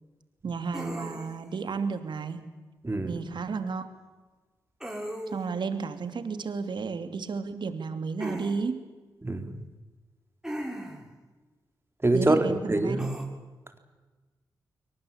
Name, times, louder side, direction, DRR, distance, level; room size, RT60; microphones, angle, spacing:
voice 1, 0.4-2.4 3.0-3.9 5.3-8.8 12.1-13.0, right 5 dB, 65° right, 9 dB, 2.8 m, -32 dB
sound 1, 0.7-1.5 4.8-5.6 8.2-8.6 10.4-11.1 13.0-13.2, equal, 5° right, 6.5 m, -37 dB
voice 2, 2.8-3.2 9.2-9.6 12.0-13.1, right 2 dB, 30° right, 7 dB, 4.1 m, -25 dB
22.5 x 20.0 x 8.8 m, 1.3 s
supercardioid pair, 40°, 8 cm